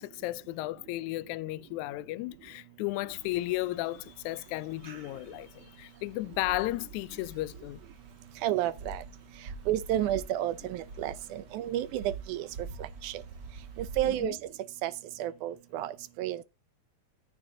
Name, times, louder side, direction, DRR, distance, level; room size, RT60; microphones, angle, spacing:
voice 1, 0.0-7.8 14.0-14.4, left 18 dB, 80° left, 1.8 m, -34 dB
sound 1, 3.1-14.3, right 3 dB, 50° right, 1.4 m, -47 dB
voice 2, 8.4-9.0 9.7-12.5 12.8-13.2 13.8-14.4 14.8-14.9 15.2-16.4, right 13 dB, 75° right, 1.9 m, -31 dB
14.0 x 7.2 x 2.7 m
omnidirectional pair, 3.9 m